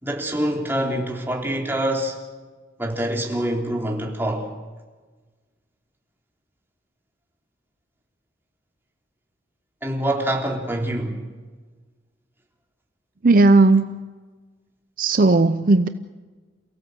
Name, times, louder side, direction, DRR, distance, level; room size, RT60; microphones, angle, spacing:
voice 1, 0.0-2.2 2.8-4.5 9.8-11.2, right 1 dB, 10° right, 3.6 m, -25 dB
voice 2, 13.2-13.9 15.0-15.9, right 3 dB, 50° right, 0.7 m, -15 dB
29.0 x 16.5 x 8.1 m
head